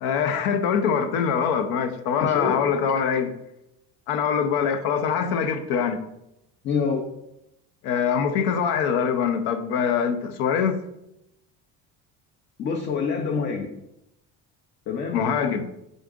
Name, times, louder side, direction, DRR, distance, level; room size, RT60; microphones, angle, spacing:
voice 1, 0.0-3.3 4.1-6.0 7.8-10.8 15.1-15.6, left 7 dB, 90° left, 8 dB, 0.6 m, -23 dB
voice 2, 2.2-2.7 6.6-7.0 12.6-13.7 14.9-15.2, left 5 dB, 35° left, 2 dB, 0.4 m, -26 dB
3.9 x 3.6 x 3.6 m, 0.85 s
cardioid pair, 150°, 36 cm